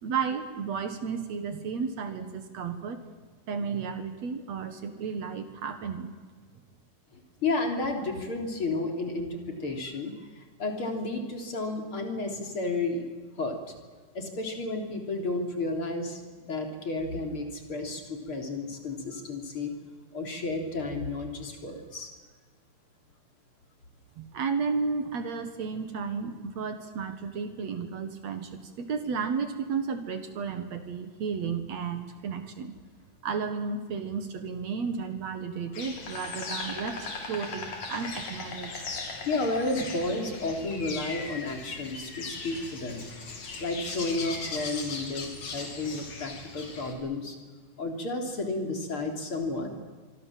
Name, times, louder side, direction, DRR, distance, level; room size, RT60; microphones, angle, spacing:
voice 1, 0.0-3.0 3.5-6.1 24.2-32.7 33.2-38.8, right 5 dB, 60° right, 8 dB, 2.7 m, -33 dB
voice 2, 7.1-13.0 13.4-13.6 14.1-19.7 20.1-22.1 39.2-43.1 43.6-47.4 47.8-49.7, left 2 dB, 40° left, 4 dB, 3.9 m, -32 dB
Insect, 35.7-46.9, left 4 dB, 60° left, 4.6 m, -38 dB
25.5 x 24.5 x 7.6 m, 1.5 s
omnidirectional pair, 3.7 m